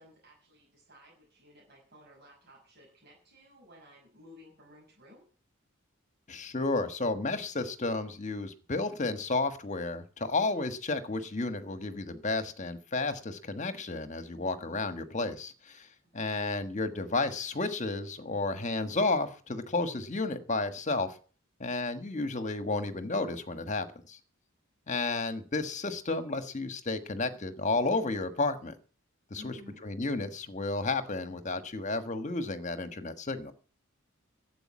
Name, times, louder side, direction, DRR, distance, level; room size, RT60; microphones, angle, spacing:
voice 1, 0.0-5.2 16.0-16.2 29.4-29.8, left 1 dB, 55° right, -3 dB, 6.0 m, -55 dB
voice 2, 6.3-15.9 16.1-21.2 21.6-24.2 24.9-28.7 29.3-29.5 29.8-33.5, left 3 dB, 40° left, 10 dB, 1.5 m, -32 dB
12.0 x 8.2 x 8.6 m, 0.41 s
head